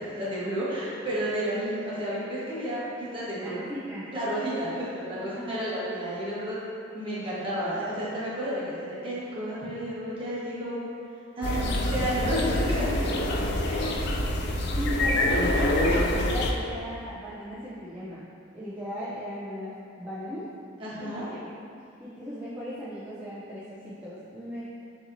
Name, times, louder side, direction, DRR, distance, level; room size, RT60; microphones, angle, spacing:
voice 1, 0.0-3.6 4.1-6.6 6.9-10.8 11.4-13.1 13.7-14.0 20.8-21.3, equal, 25° right, -9 dB, 1.2 m, -31 dB
voice 2, 3.4-4.1 5.2-5.6 11.5-12.4 14.8-18.2 18.5-20.5 21.0-21.4 22.0-24.7, equal, 10° right, -11 dB, 0.5 m, -37 dB
sound 1, 11.4-16.5, left 1 dB, 60° left, 0.4 m, -26 dB
6.6 x 2.9 x 2.6 m, 2.6 s
head